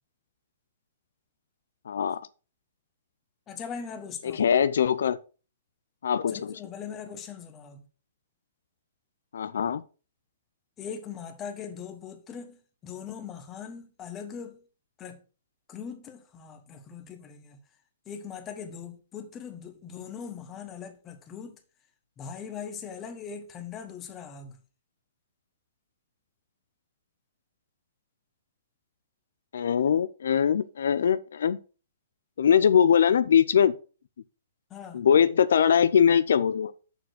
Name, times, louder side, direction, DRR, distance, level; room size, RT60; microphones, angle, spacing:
voice 1, 1.9-2.2 4.3-5.2 6.0-6.5 9.3-9.8 29.5-31.6 32.4-33.7 34.9-36.7, left 8 dB, 75° left, 0.5 m, -22 dB
voice 2, 3.5-4.4 6.3-7.8 10.8-14.6 15.0-15.2 15.7-17.6 18.1-21.6 22.2-24.6 34.7-35.0, left 7 dB, 20° left, 1.2 m, -40 dB
6.9 x 4.3 x 6.3 m
hypercardioid pair, 160°, 0 cm